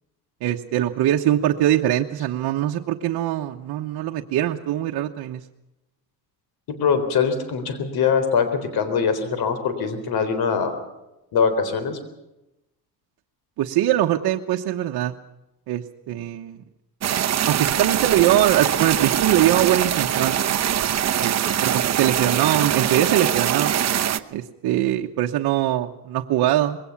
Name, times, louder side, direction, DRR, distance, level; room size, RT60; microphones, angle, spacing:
voice 1, 0.4-5.4 13.6-15.1 15.7-16.6 17.5-20.4 21.2-21.3 21.6-23.7 24.3-26.8, right 12 dB, 70° right, 2 dB, 1.1 m, -22 dB
voice 2, 6.7-10.7 11.3-12.0, left 6 dB, 65° left, 10 dB, 3.9 m, -22 dB
sound 1, 17.0-24.2, right 10 dB, 45° right, 0.9 m, -22 dB
21.5 x 17.5 x 7.2 m, 0.93 s
cardioid pair, 110°, 39 cm